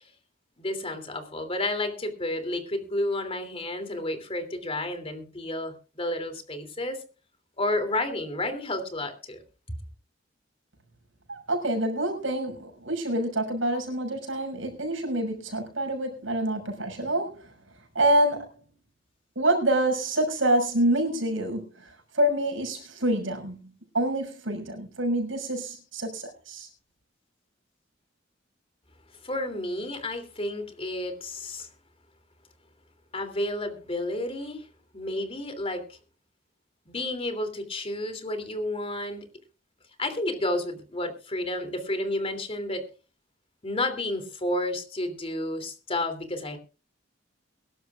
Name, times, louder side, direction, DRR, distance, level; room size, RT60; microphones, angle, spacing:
voice 1, 0.6-7.0 7.6-9.4 29.2-31.7 33.1-34.7 34.9-36.0 36.9-39.2 40.0-42.8 43.6-46.6, left 1 dB, 30° left, 8 dB, 3.0 m, -31 dB
voice 2, 11.3-17.5 17.9-18.6 19.3-23.6 23.9-26.7, right 1 dB, 80° right, 4 dB, 6.3 m, -27 dB
23.5 x 12.0 x 2.5 m, 0.34 s
head